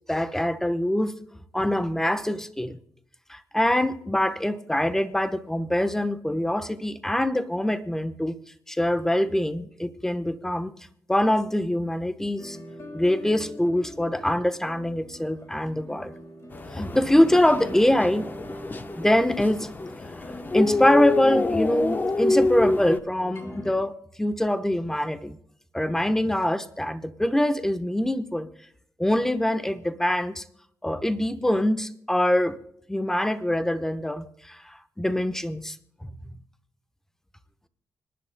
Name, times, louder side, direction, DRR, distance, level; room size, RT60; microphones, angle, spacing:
voice 1, 0.1-1.2 1.5-2.8 3.3-8.4 8.7-10.7 11.1-12.6 12.9-16.1 16.7-18.3 19.0-19.7 20.5-23.9 24.2-25.4 25.7-28.5 29.0-30.4 30.8-32.6 32.9-34.6 35.0-35.7 36.0-36.2, left 1 dB, 5° left, 10 dB, 1.0 m, -24 dB
sound 1, 12.4-23.7, left 1 dB, 50° left, 2.7 m, -43 dB
sound 2, 16.5-23.0, left 2 dB, 30° left, 0.9 m, -27 dB
26.0 x 10.5 x 2.2 m, 0.68 s
cardioid pair, 80°, 6 cm